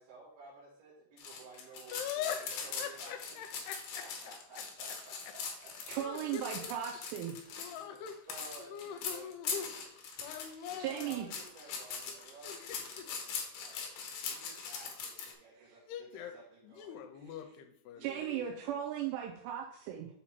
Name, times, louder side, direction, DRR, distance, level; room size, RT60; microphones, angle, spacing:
voice 1, 0.0-3.4 4.0-6.6 7.6-7.9 8.3-9.8 10.6-14.0 14.3-17.0 18.0-18.8, right 3 dB, 65° right, -8 dB, 3.6 m, -54 dB
sound 1, 1.2-15.3, left 5 dB, 65° left, 2.2 m, -41 dB
voice 2, 1.9-4.0 6.0-6.7 7.6-8.3 8.6-9.7 10.2-11.2 12.1-12.2 12.4-13.1 15.8-16.3 16.6-18.3, left 9 dB, 80° left, 6 dB, 2.6 m, -43 dB
voice 3, 5.9-7.4 10.8-11.3 18.0-20.1, right 10 dB, 85° right, 0 dB, 2.9 m, -37 dB
7.2 x 4.4 x 4.3 m, 0.69 s
omnidirectional pair, 4.9 m